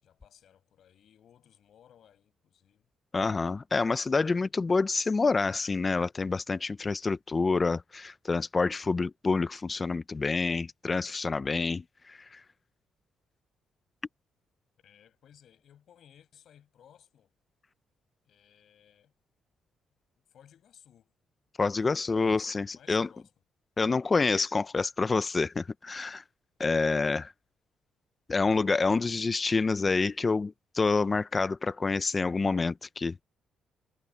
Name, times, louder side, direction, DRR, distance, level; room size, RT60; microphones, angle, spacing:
voice 1, 0.0-2.9 4.2-4.5 14.8-17.3 18.2-19.1 20.3-21.1 21.8-23.3, left 9 dB, 65° left, 6.6 m, -60 dB
voice 2, 3.1-12.4 21.6-23.1 23.8-26.2 26.6-27.3 28.3-33.2, left 4 dB, 30° left, 0.7 m, -27 dB
cardioid pair, 90°, 0 cm